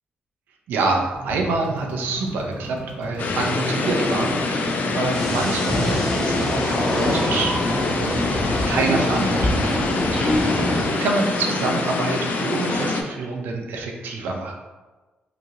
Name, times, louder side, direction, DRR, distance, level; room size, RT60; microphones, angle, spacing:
voice 1, 0.7-8.3 8.7-14.6, right 3 dB, 80° right, 1 dB, 0.5 m, -27 dB
sound 1, 1.1-9.6, right 1 dB, 25° right, 1.2 m, -36 dB
sound 2, 3.2-13.0, left 3 dB, 55° left, 0.3 m, -25 dB
sound 3, 5.0-10.8, left 1 dB, 15° left, 0.7 m, -25 dB
2.9 x 2.4 x 2.6 m, 1.2 s
cardioid pair, 125°, 3 cm